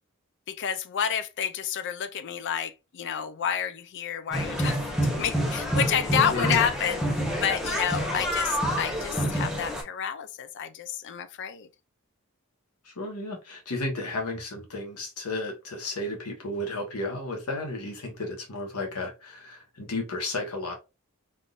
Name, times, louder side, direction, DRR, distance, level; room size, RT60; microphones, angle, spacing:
voice 1, 0.5-4.8 5.2-11.7, left 8 dB, 55° left, 0.4 m, -29 dB
sound 1, 4.3-9.8, equal, ahead, 0.7 m, -28 dB
voice 2, 6.3-6.6 12.8-20.7, left 2 dB, 85° left, 1.1 m, -33 dB
3.5 x 2.6 x 2.3 m
head